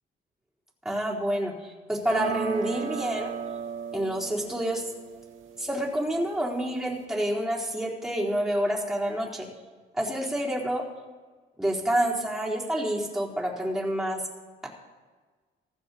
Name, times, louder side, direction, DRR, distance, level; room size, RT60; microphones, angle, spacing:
voice 1, 0.8-3.3 3.9-4.8 5.6-9.5 9.9-10.8 11.6-14.2, right 1 dB, ahead, -4 dB, 4.0 m, -28 dB
sound 1, 2.0-7.0, right 7 dB, 80° right, 2.0 m, -37 dB
15.0 x 14.0 x 4.2 m, 1.4 s
cardioid pair, 90°, 20 cm